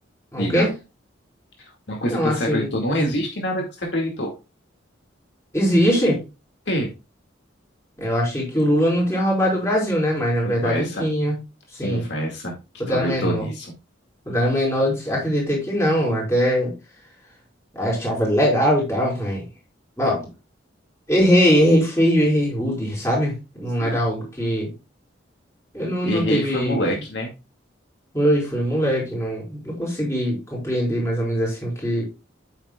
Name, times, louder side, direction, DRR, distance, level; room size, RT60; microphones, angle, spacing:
voice 1, 0.3-0.7 2.1-2.9 5.5-6.2 8.0-11.4 11.7-12.0 12.8-13.4 14.3-16.7 17.7-19.4 20.0-20.2 21.1-23.3 23.6-24.7 25.7-26.9 28.1-32.0, equal, 15° left, -3 dB, 4.9 m, -21 dB
voice 2, 1.9-4.3 6.7-6.9 10.4-11.0 11.8-12.5 12.9-13.7 23.8-24.0 26.0-27.3, equal, 60° left, 0 dB, 2.2 m, -26 dB
9.0 x 8.8 x 2.4 m, 0.27 s
head